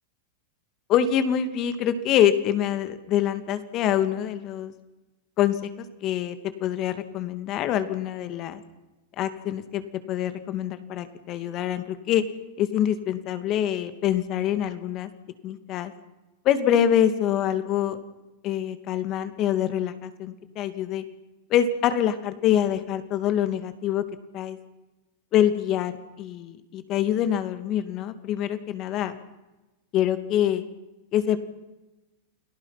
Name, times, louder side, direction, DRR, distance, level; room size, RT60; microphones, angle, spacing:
voice 1, 0.9-4.7 5.4-5.7 6.0-8.6 9.2-12.2 12.6-15.1 15.4-15.9 16.4-18.0 18.4-21.0 21.5-24.0 24.3-24.6 25.3-29.1 29.9-30.6 31.1-31.4, left 10 dB, 45° left, 10 dB, 2.3 m, -25 dB
29.5 x 18.5 x 5.8 m, 1.0 s
hypercardioid pair, 110°, 0 cm